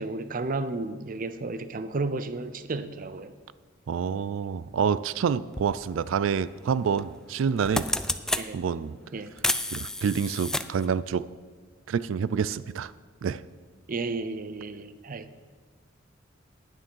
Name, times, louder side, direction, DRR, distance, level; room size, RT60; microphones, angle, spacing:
voice 1, 0.0-3.3 8.4-8.6 9.1-9.3 13.9-15.3, right 3 dB, 45° right, 0.6 m, -33 dB
voice 2, 3.9-7.9 8.5-9.0 9.7-11.3 11.9-12.9 13.2-13.4, right 6 dB, 90° right, 0.4 m, -27 dB
sound 1, 5.5-5.7 7.0-7.2 7.5-8.5 9.4-10.9, left 1 dB, 5° left, 0.3 m, -29 dB
10.0 x 9.0 x 5.5 m
head